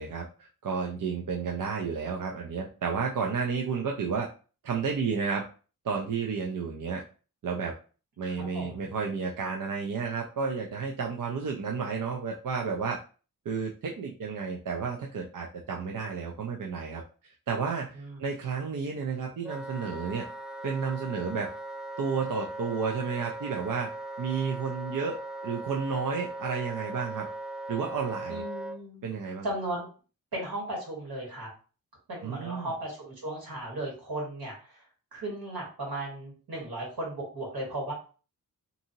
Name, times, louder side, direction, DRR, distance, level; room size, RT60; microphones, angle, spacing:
voice 1, 0.0-4.3 4.6-5.5 5.8-7.0 7.4-7.7 8.2-13.0 13.5-17.0 17.5-20.2 20.6-21.5 22.0-23.9 24.2-25.2 25.4-27.3 27.7-28.4 29.0-29.5 32.2-32.7, right 5 dB, 60° right, 0 dB, 0.5 m, -31 dB
voice 2, 8.5-8.9 17.9-18.2 28.3-29.1 29.4-29.8 30.3-31.5 32.1-34.8 35.1-37.9, right 1 dB, 80° right, -3 dB, 1.6 m, -36 dB
Wind instrument woodwind instrument, 19.4-28.8, right 2 dB, ahead, 0.3 m, -39 dB
2.7 x 2.6 x 2.7 m, 0.37 s
cardioid pair, 55°, 37 cm